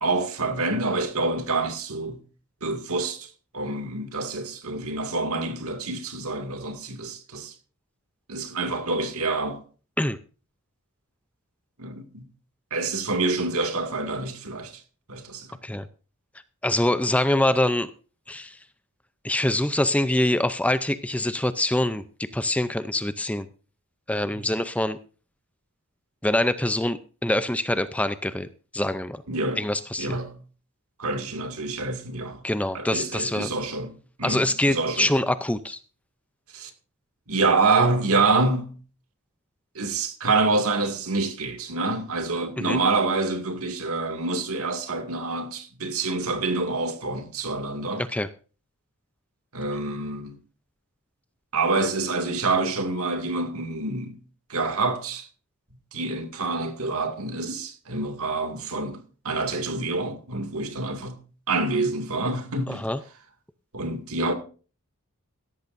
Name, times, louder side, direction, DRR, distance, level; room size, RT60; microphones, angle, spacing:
voice 1, 0.0-2.2 2.6-3.3 3.5-7.5 8.3-9.6 11.8-12.2 12.7-14.8 15.1-15.6 24.3-24.4 29.3-29.6 30.0-30.4 31.0-32.4 32.7-33.9 34.2-35.1 36.5-36.7 37.3-38.8 39.7-48.0 49.5-50.4 51.5-54.2 54.5-55.3 55.9-59.0 59.2-61.2 61.5-62.8 63.7-64.3, right 3 dB, 75° right, 2.3 m, -27 dB
voice 2, 16.6-17.9 18.3-18.6 19.2-23.5 24.1-25.0 26.2-28.5 28.7-29.2 29.6-30.2 32.4-33.5 34.2-35.8 42.6-42.8 48.0-48.3 62.7-63.0, left 1 dB, 5° left, 0.5 m, -24 dB
16.5 x 14.0 x 2.6 m
head